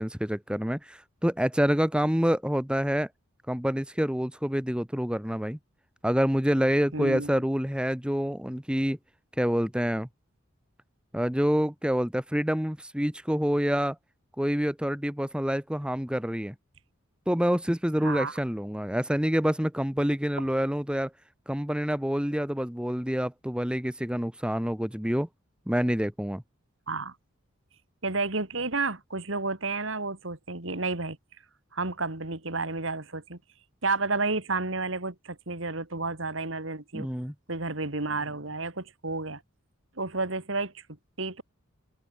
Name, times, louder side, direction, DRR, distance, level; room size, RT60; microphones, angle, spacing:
voice 1, 0.0-3.1 3.5-5.6 6.0-9.0 9.4-10.1 11.1-14.0 14.4-16.5 17.3-21.1 21.5-25.3 25.7-26.4 36.9-37.3, equal, 5° right, 1.1 m, -27 dB
voice 2, 6.9-7.3 18.0-18.3 26.9-27.1 28.0-31.2 31.7-33.4 33.8-37.1 37.5-39.4 40.0-40.8 41.2-41.4, right 3 dB, 65° right, 2.6 m, -31 dB
head